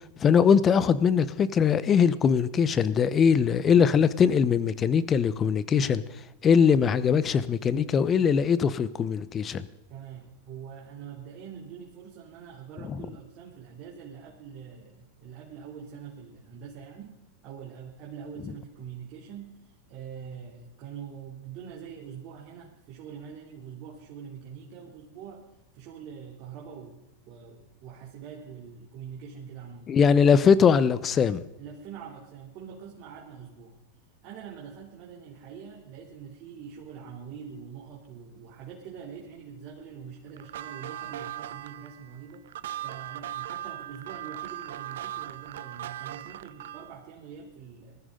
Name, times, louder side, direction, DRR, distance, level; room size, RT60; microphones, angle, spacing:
voice 1, 0.2-6.0 6.4-9.7 12.9-13.0 29.9-31.4, left 7 dB, 30° left, 1.0 m, -21 dB
voice 2, 9.9-25.5 25.7-29.9 31.6-33.8 34.2-42.5 42.8-48.0, right 7 dB, 50° right, 3.2 m, -44 dB
sound 1, 40.4-47.0, right 12 dB, 75° right, 0.6 m, -39 dB
20.0 x 14.0 x 3.9 m
hypercardioid pair, 105°, 0 cm